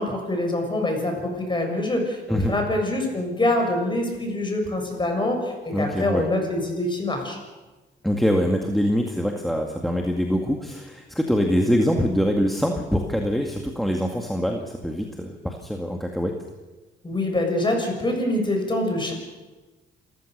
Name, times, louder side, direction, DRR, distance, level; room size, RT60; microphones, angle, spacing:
voice 1, 0.0-7.4 17.0-19.1, left 1 dB, 25° left, 3 dB, 7.1 m, -25 dB
voice 2, 5.7-6.3 8.0-16.3, equal, ahead, 2 dB, 2.1 m, -24 dB
27.5 x 15.0 x 6.8 m, 1.2 s
cardioid pair, 90°, 20 cm